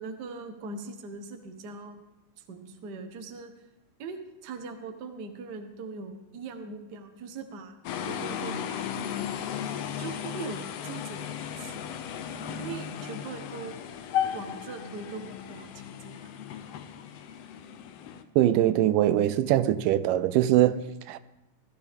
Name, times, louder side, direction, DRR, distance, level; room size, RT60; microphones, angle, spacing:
voice 1, 0.0-2.0 2.4-3.5 4.0-7.8 8.1-8.9 10.0-11.9 12.6-13.8 14.3-16.3, right 4 dB, 70° right, 0.9 m, -41 dB
sound 1, 7.8-18.2, left 9 dB, 75° left, 1.5 m, -35 dB
voice 2, 18.4-21.2, right 13 dB, 90° right, 2.2 m, -22 dB
17.5 x 12.5 x 3.6 m
omnidirectional pair, 3.7 m